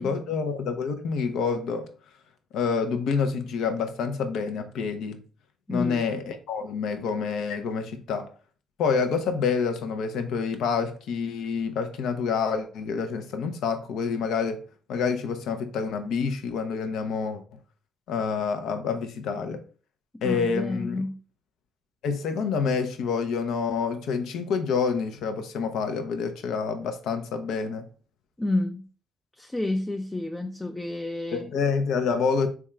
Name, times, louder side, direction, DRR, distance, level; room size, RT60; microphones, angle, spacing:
voice 1, 0.0-1.9 2.5-5.2 5.7-8.3 8.8-14.6 14.9-17.4 18.1-19.6 20.2-21.0 22.0-27.9 31.3-32.5, left 5 dB, 75° left, 0.6 m, -27 dB
voice 2, 5.7-6.1 20.2-21.2 28.4-28.9 29.4-31.5, left 2 dB, 15° left, 0.3 m, -30 dB
3.5 x 2.3 x 4.2 m
supercardioid pair, 65°, 0 cm